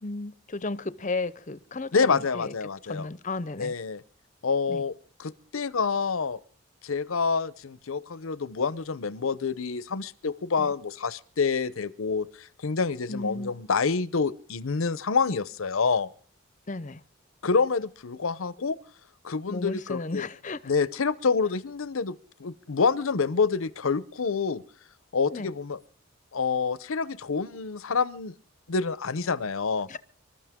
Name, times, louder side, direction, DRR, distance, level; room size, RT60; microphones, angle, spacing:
voice 1, 0.0-2.5 2.8-3.7 4.7-4.8 10.6-10.7 13.1-13.5 16.7-17.0 19.5-20.6 25.3-25.5 29.9-30.0, left 3 dB, 35° left, 0.7 m, -34 dB
voice 2, 1.9-3.1 3.6-4.0 4.4-4.9 5.2-6.4 6.8-16.1 17.4-18.8 19.2-20.3 20.7-24.6 25.1-25.8 26.3-28.3 28.7-29.9, left 5 dB, 75° left, 0.7 m, -27 dB
26.5 x 13.0 x 3.6 m
head